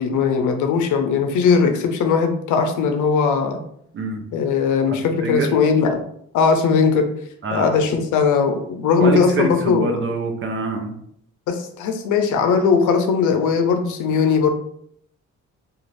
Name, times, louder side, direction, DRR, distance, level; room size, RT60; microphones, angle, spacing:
voice 1, 0.0-3.6 4.3-6.0 6.3-7.1 7.5-9.9 11.5-14.5, left 5 dB, 80° left, 6 dB, 0.6 m, -19 dB
voice 2, 4.9-5.6 7.4-7.8 9.0-10.9, right 3 dB, 40° right, 3 dB, 0.7 m, -25 dB
2.5 x 2.4 x 3.1 m, 0.69 s
cardioid pair, 90°, 30 cm